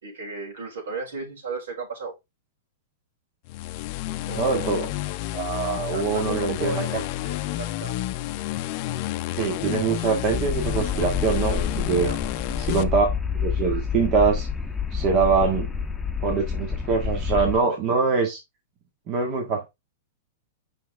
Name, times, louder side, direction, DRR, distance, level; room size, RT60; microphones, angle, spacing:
voice 1, 0.0-2.1 4.2-4.7 5.6-7.2 7.5-8.0 12.0-12.2, right 4 dB, 75° right, 4.5 m, -35 dB
sound 1, 3.5-12.8, left 15 dB, 50° left, 0.6 m, -30 dB
voice 2, 4.4-4.9 5.3-6.8 7.2-7.4 9.4-12.1 12.6-13.1 13.3-14.5 14.9-15.7 16.2-18.4 19.1-19.7, right 5 dB, 40° right, 1.8 m, -23 dB
sound 2, 10.3-17.6, left 6 dB, 10° left, 1.0 m, -28 dB
5.8 x 5.8 x 3.6 m
hypercardioid pair, 120°, 0 cm